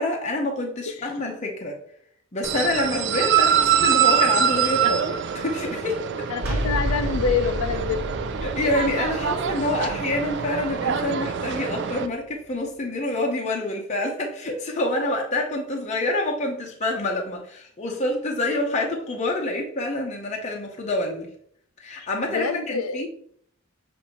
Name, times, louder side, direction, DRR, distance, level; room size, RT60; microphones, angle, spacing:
voice 1, 0.0-1.8 2.3-6.3 8.4-21.3 21.8-23.1, left 1 dB, 30° left, 0.6 m, -27 dB
sound 1, 2.4-12.1, right 8 dB, 55° right, 0.4 m, -24 dB
voice 2, 6.3-8.1 8.6-8.9 9.4-9.5 22.0-23.1, left 5 dB, 80° left, 0.4 m, -27 dB
sound 2, 6.4-12.1, equal, 75° right, 1.4 m, -31 dB
6.7 x 2.6 x 2.9 m
head